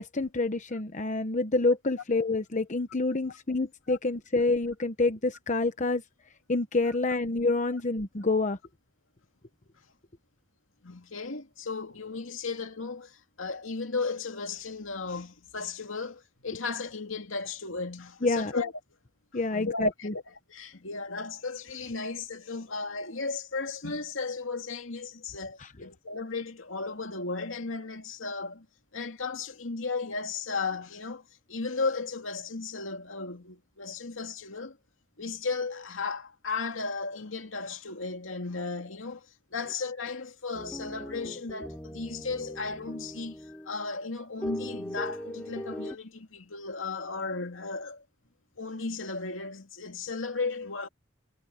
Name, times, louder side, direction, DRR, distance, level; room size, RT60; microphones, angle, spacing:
voice 1, 0.0-6.0 6.5-8.6 18.2-18.5 19.3-20.1 25.6-25.7, left 3 dB, 40° left, 1.0 m, -27 dB
voice 2, 10.8-18.7 19.5-28.7 28.9-31.2 31.5-34.8 35.2-48.0 48.6-50.9, left 4 dB, 85° left, 2.4 m, -35 dB
sound 1, 40.5-44.0 44.4-46.0, equal, 10° left, 3.2 m, -40 dB
head